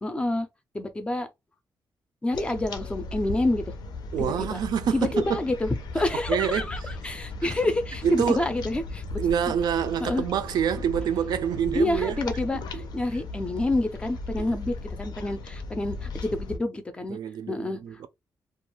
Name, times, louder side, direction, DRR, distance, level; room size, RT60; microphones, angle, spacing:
voice 1, 0.0-0.5 0.7-1.3 2.2-3.7 4.2-4.6 4.9-9.2 10.0-10.2 11.7-17.2 17.5-17.8, left 2 dB, 15° left, 0.4 m, -28 dB
sound 1, 2.3-16.6, left 3 dB, 80° left, 0.5 m, -37 dB
voice 2, 4.1-5.4 6.0-6.6 7.6-7.7 8.0-8.5 9.2-12.2 12.7-12.9 14.4-14.5 17.1-18.1, right 9 dB, 75° right, 0.4 m, -27 dB
2.4 x 2.2 x 3.0 m
wide cardioid pair, 170°, 7 cm